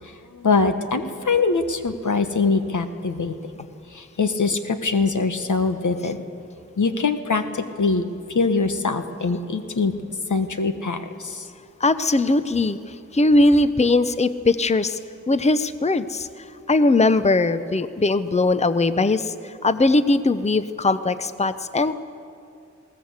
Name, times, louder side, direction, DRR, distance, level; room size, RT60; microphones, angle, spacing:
voice 1, 0.0-3.4 3.9-6.2 6.8-8.0 8.3-9.9 10.3-11.5, left 4 dB, 80° left, 8 dB, 1.3 m, -23 dB
voice 2, 11.8-12.8 13.1-15.0 15.3-16.3 16.7-21.9, left 2 dB, 20° left, 12 dB, 0.7 m, -20 dB
21.0 x 17.5 x 8.1 m, 2.5 s
wide cardioid pair, 65°, 30 cm